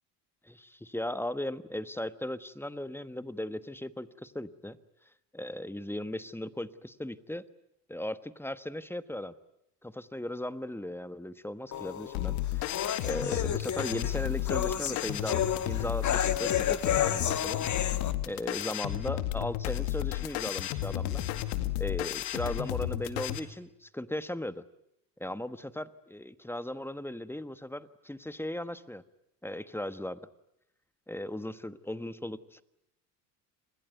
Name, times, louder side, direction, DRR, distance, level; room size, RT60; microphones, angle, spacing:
voice 1, 0.4-4.8 5.3-7.4 7.9-9.3 9.8-12.7 13.0-17.6 18.3-21.2 21.8-24.6 25.2-29.0 29.4-30.2 31.1-32.6, left 1 dB, 5° left, 14 dB, 1.3 m, -37 dB
sound 1, 11.7-18.1, left 9 dB, 40° left, 1.6 m, -31 dB
sound 2, 12.1-23.4, left 14 dB, 80° left, 2.1 m, -33 dB
28.5 x 21.0 x 9.3 m, 0.82 s
supercardioid pair, 80°, 46 cm